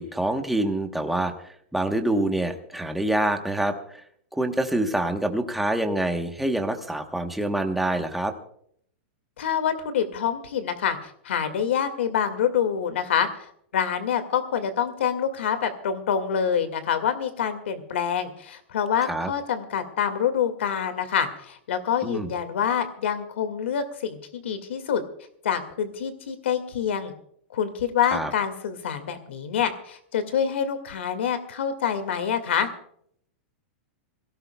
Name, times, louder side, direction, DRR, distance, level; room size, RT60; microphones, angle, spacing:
voice 1, 0.0-1.3 1.7-4.0 4.3-8.3 19.1-19.3 22.0-22.3 28.1-28.3, right 1 dB, ahead, 4 dB, 1.1 m, -26 dB
voice 2, 9.4-13.3 13.7-25.0 25.4-27.1 27.5-32.7, left 8 dB, 90° left, 9 dB, 2.0 m, -26 dB
26.0 x 17.5 x 2.3 m, 0.67 s
supercardioid pair, 170°, 6 cm